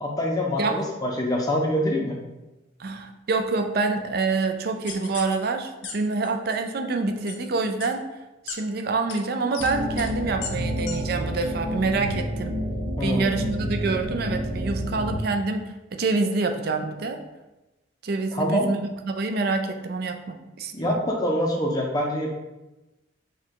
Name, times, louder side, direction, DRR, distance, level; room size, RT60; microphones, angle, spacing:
voice 1, 0.0-2.2 13.0-13.3 18.3-18.7 20.7-22.3, left 1 dB, 20° left, 0 dB, 0.5 m, -25 dB
voice 2, 2.8-8.0 8.5-12.6 13.0-17.2 18.0-21.0, right 3 dB, 55° right, 6 dB, 0.4 m, -26 dB
sound 1, 4.9-5.3 5.8-5.9 6.2-6.6 7.3-7.4 7.8-7.9 8.5-8.6 9.1-9.2 9.5-9.7 10.0-10.1 10.4-10.5 10.9-11.0 11.4-11.5, left 6 dB, 80° left, 0.6 m, -35 dB
sound 2, 9.6-15.2, equal, 85° right, 0.8 m, -29 dB
4.6 x 2.2 x 4.5 m, 1.0 s
head